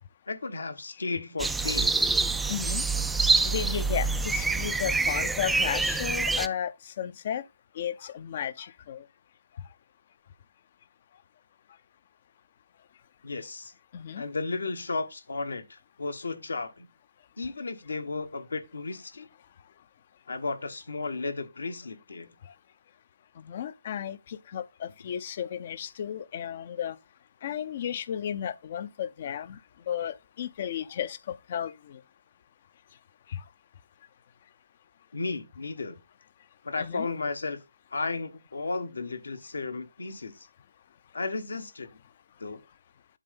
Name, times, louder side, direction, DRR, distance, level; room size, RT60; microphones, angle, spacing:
voice 1, 0.3-2.1 13.2-13.7 14.1-16.9 17.4-19.3 20.3-22.3 35.1-36.0 36.6-37.6 37.9-40.5 41.1-42.0 42.4-42.6, left 3 dB, 65° left, 1.3 m, -34 dB
sound 1, 1.4-6.5, right 3 dB, 5° right, 0.4 m, -26 dB
voice 2, 2.3-2.8 3.4-7.4 7.8-9.0 13.9-14.2 23.4-27.0 27.4-29.6 29.9-32.0 33.3-33.4 36.8-37.1, left 9 dB, 40° left, 0.6 m, -34 dB
7.5 x 3.4 x 5.3 m
figure-of-eight pair, 130°, 0 cm